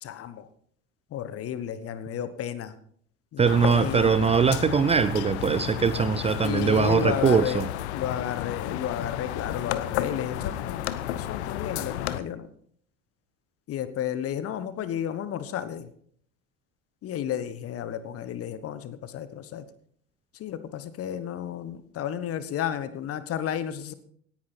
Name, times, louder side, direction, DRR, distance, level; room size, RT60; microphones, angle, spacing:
voice 1, 0.0-0.5 1.1-2.8 3.3-4.2 6.4-7.6 7.9-12.5 13.7-15.9 17.0-19.6 20.3-23.9, left 10 dB, 40° left, 13 dB, 1.3 m, -32 dB
voice 2, 3.4-7.6, right 6 dB, 15° right, 13 dB, 0.6 m, -22 dB
sound 1, 3.5-12.2, left 12 dB, 60° left, 0.9 m, -32 dB
17.5 x 10.5 x 4.4 m, 0.62 s
figure-of-eight pair, 65°, 37 cm